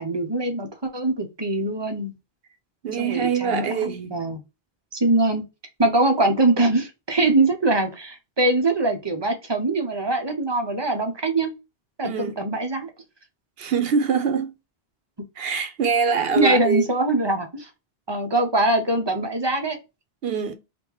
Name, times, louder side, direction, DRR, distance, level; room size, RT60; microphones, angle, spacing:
voice 1, 0.0-2.1 3.0-4.4 4.9-5.4 5.8-11.5 12.0-12.9 16.4-17.7 18.1-19.8, right 2 dB, 25° right, 0.8 m, -22 dB
voice 2, 2.8-4.0 12.0-12.3 13.6-14.5 15.4-16.9 20.2-20.5, right 6 dB, 70° right, 0.9 m, -24 dB
3.6 x 2.5 x 4.5 m
omnidirectional pair, 1.1 m